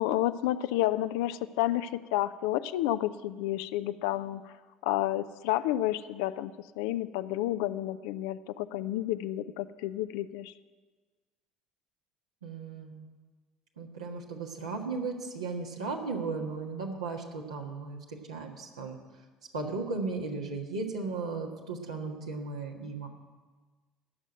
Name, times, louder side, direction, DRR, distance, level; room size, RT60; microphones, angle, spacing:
voice 1, 0.0-4.5 4.8-10.5, left 14 dB, 65° left, 13 dB, 0.4 m, -30 dB
voice 2, 12.4-13.1 13.8-19.0 19.5-23.1, right 4 dB, 80° right, 0 dB, 1.5 m, -36 dB
17.0 x 6.3 x 9.0 m, 1.4 s
figure-of-eight pair, 60°, 3 cm